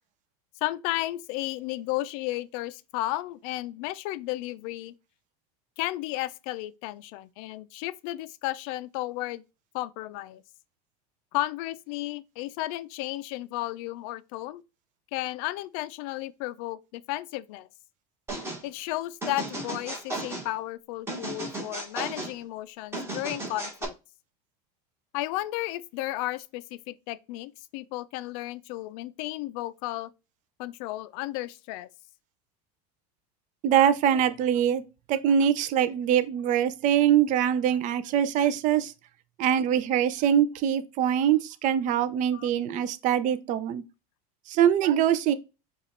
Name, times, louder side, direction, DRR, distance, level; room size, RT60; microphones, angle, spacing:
voice 1, 0.6-4.9 5.8-9.4 9.7-10.4 11.3-14.6 15.1-17.7 18.6-23.9 25.1-30.1 30.6-31.9 42.3-42.5, left 16 dB, 60° left, 0.5 m, -33 dB
sound 1, 18.3-18.6 19.2-20.5 21.1-22.3 22.9-23.9, right 2 dB, 10° right, 1.4 m, -35 dB
voice 2, 33.6-34.8 35.1-38.9 39.4-43.8 44.5-45.3, right 9 dB, 40° right, 0.5 m, -23 dB
4.9 x 2.4 x 4.2 m
supercardioid pair, 125°, 20 cm